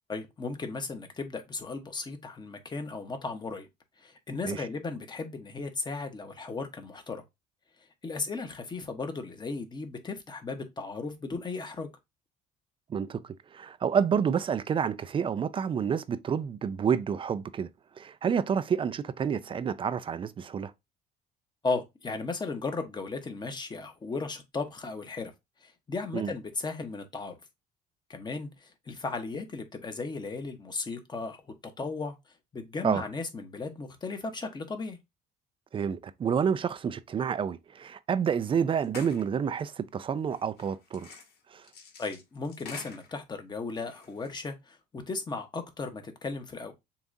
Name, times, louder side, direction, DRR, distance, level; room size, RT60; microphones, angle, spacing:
voice 1, 0.1-3.7 4.0-7.2 8.0-11.9 21.6-25.3 25.6-27.4 28.1-32.1 32.5-35.0 42.0-46.8, left 3 dB, 25° left, 1.0 m, -36 dB
voice 2, 12.9-17.7 18.0-20.7 26.1-26.3 32.8-33.0 35.7-41.1 41.5-41.7, right 7 dB, 30° right, 0.4 m, -29 dB
sound 1, 38.4-38.6 38.8-39.3 40.3-43.2 43.8-44.4, left 5 dB, 70° left, 1.4 m, -47 dB
6.9 x 2.4 x 2.6 m
cardioid pair, 110°, 17 cm